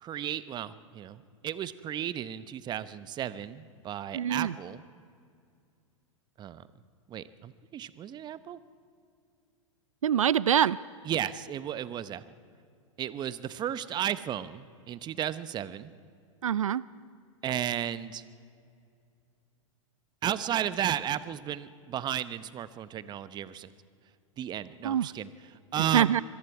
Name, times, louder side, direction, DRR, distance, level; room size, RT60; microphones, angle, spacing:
voice 1, 0.0-4.8 6.4-6.6 7.1-8.6 11.0-12.2 13.0-15.9 17.4-18.2 20.2-23.7 24.4-26.2, right 10 dB, 25° right, 16 dB, 0.8 m, -34 dB
voice 2, 4.1-4.5 10.0-10.8 16.4-16.8 24.8-25.1 25.9-26.2, right 9 dB, 80° right, 20 dB, 0.4 m, -24 dB
25.5 x 21.5 x 4.8 m, 2.4 s
hypercardioid pair, 100°, 17 cm